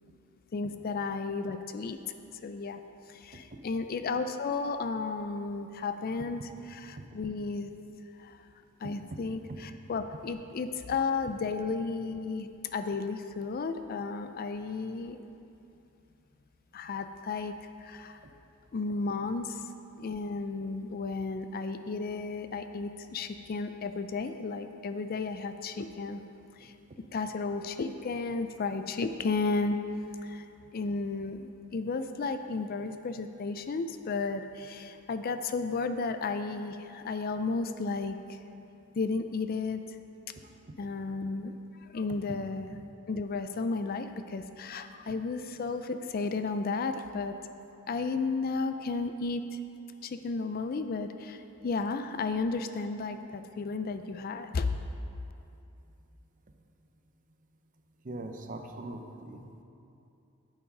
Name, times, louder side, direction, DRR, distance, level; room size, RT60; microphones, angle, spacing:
voice 1, 0.5-2.0 2.4-2.8 3.1-6.4 6.7-7.7 8.2-8.5 8.8-15.2 16.7-17.6 17.8-18.2 18.7-19.6 19.9-26.2 26.6-26.7 27.1-29.8 30.2-30.5 30.7-38.4 38.9-39.8 40.8-41.5 41.8-42.7 43.1-47.3 47.9-49.4 50.0-54.8, left 4 dB, 45° left, 9 dB, 0.4 m, -33 dB
voice 2, 8.8-9.2 9.5-9.6 40.4-40.8 58.0-59.6, right 2 dB, 40° right, 5 dB, 0.6 m, -42 dB
8.6 x 7.2 x 5.2 m, 2.7 s
head